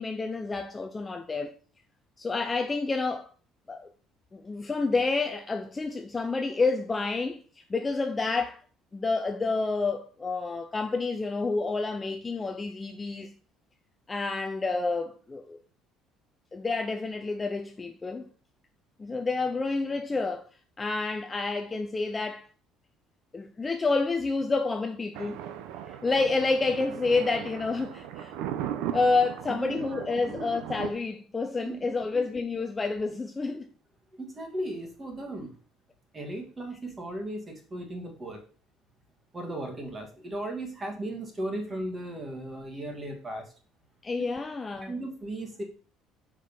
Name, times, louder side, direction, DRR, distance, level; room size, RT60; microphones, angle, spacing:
voice 1, 0.0-1.6 2.2-3.3 3.7-3.9 4.3-8.6 8.9-13.3 14.1-15.6 16.5-18.3 19.0-20.4 20.8-22.5 23.3-25.4 25.9-28.3 28.9-33.7 44.0-44.9, left 3 dB, 15° left, 0.5 m, -29 dB
Thunder, 25.1-30.9, right 10 dB, 80° right, 0.8 m, -37 dB
voice 2, 29.5-30.4 31.6-31.8 32.1-32.3 34.2-35.5 36.1-38.4 39.3-43.5 44.8-45.6, right 1 dB, 20° right, 1.8 m, -36 dB
6.4 x 5.1 x 5.4 m
cardioid pair, 165°, 0 cm